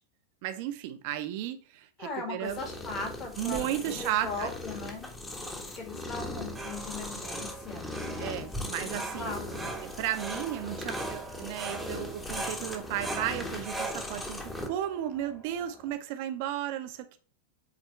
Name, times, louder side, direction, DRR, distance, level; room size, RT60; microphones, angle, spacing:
voice 1, 0.4-2.6 3.4-4.5 8.2-9.4 9.8-17.2, right 12 dB, 45° right, 0.9 m, -34 dB
voice 2, 2.0-3.6 3.9-5.1 5.8-8.5 8.9-9.7, left 3 dB, 30° left, 2.1 m, -39 dB
sound 1, 2.4-14.7, left 2 dB, 10° left, 1.4 m, -39 dB
sound 2, 6.2-15.9, right 2 dB, 10° right, 1.3 m, -41 dB
8.6 x 3.6 x 3.2 m
figure-of-eight pair, 90°, 0 cm